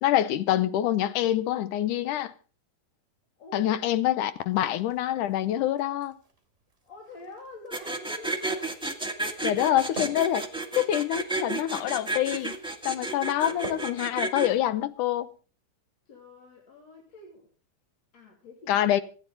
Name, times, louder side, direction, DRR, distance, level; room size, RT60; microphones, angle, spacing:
voice 1, 0.0-2.3 3.5-6.2 9.4-10.5 10.8-12.6 12.9-15.3 18.7-19.0, left 12 dB, 75° left, 2.2 m, -26 dB
voice 2, 3.4-3.7 6.8-8.8 16.1-17.5 18.1-18.9, left 1 dB, 50° left, 3.8 m, -46 dB
sound 1, 4.5-15.4, right 2 dB, 20° right, 3.0 m, -47 dB
sound 2, 7.7-14.5, right 2 dB, 5° right, 0.5 m, -31 dB
25.5 x 9.9 x 4.0 m
omnidirectional pair, 3.9 m